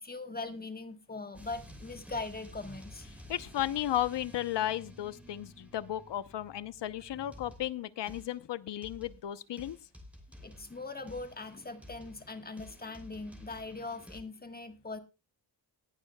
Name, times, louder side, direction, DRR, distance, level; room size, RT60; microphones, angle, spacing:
voice 1, 0.0-3.1 10.4-15.0, left 3 dB, 20° left, 7 dB, 1.4 m, -41 dB
sound 1, 1.3-7.8 8.1-8.4 8.8-9.3 9.6-14.2, left 1 dB, 5° right, 3.1 m, -52 dB
voice 2, 3.3-9.8, left 12 dB, 65° left, 15 dB, 0.8 m, -34 dB
19.0 x 11.0 x 2.3 m, 0.28 s
wide cardioid pair, 145°, 46 cm